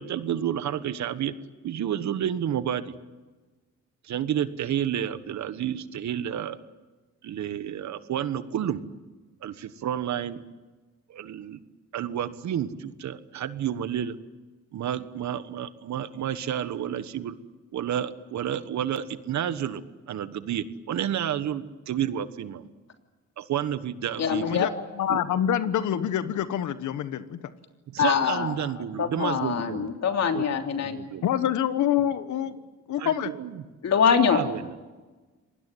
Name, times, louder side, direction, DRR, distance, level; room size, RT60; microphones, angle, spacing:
voice 1, 0.0-1.3 1.6-2.9 4.1-6.6 7.2-8.8 9.4-10.4 11.1-11.6 11.9-14.1 14.7-17.3 17.7-19.8 20.1-22.7 23.4-24.7 25.1-25.2 27.9-29.9 30.3-31.3 33.0-33.6 34.3-34.7, right 10 dB, 65° right, 13 dB, 1.4 m, -30 dB
voice 2, 24.2-24.7 28.0-28.5 29.0-31.0 33.8-34.4, left 7 dB, 60° left, 5 dB, 3.2 m, -23 dB
voice 3, 25.0-27.4 31.2-32.6 32.9-33.3, left 10 dB, 75° left, 12 dB, 1.3 m, -26 dB
25.0 x 19.5 x 9.3 m, 1.3 s
cardioid pair, 90°, 30 cm